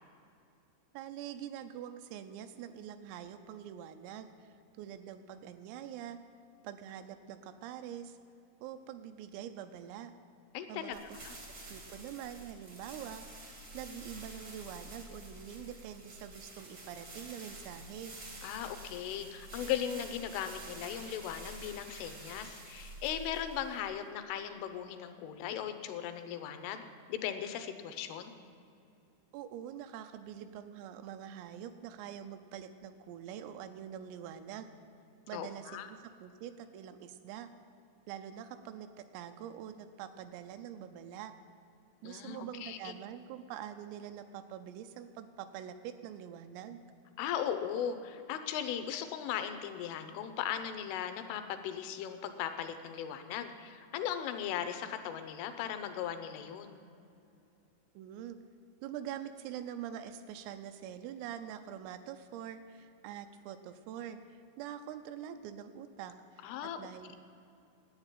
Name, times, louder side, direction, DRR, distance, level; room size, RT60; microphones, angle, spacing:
voice 1, 0.9-6.2 6.6-8.2 8.6-10.1 10.7-11.0 11.7-13.3 13.7-18.2 29.3-34.7 35.3-35.7 36.0-37.5 38.1-41.3 42.0-46.8 58.0-58.4 58.8-66.5 66.8-67.2, right 10 dB, 85° right, 8 dB, 3.2 m, -45 dB
voice 2, 10.5-11.3 18.4-26.8 27.1-28.3 35.3-35.9 42.0-42.9 47.2-56.8 66.4-66.8, left 9 dB, 80° left, 9 dB, 3.1 m, -38 dB
sound 1, 10.9-24.0, right 1 dB, 65° right, 1.0 m, -49 dB
11.5 x 8.9 x 9.0 m, 2.6 s
omnidirectional pair, 6.0 m